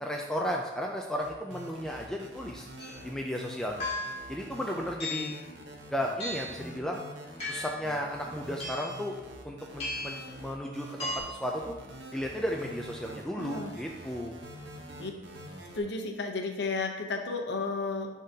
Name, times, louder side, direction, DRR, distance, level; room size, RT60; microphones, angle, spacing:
voice 1, 0.0-2.7 3.0-3.9 4.3-5.3 5.9-7.0 7.5-9.2 9.4-11.7 12.1-14.4, equal, 5° left, 0 dB, 0.3 m, -34 dB
sound 1, 1.2-15.8, right 1 dB, 70° right, 1.0 m, -46 dB
sound 2, 2.8-3.0 3.8-4.3 5.0-5.4 6.2-6.6 7.4-7.9 8.6-9.0 9.8-10.3 11.0-11.2, left 2 dB, 30° left, 1.7 m, -36 dB
voice 2, 13.4-13.7 15.0-15.1 15.7-18.1, left 3 dB, 65° left, 3 dB, 0.8 m, -33 dB
10.5 x 3.7 x 2.8 m, 1.1 s
head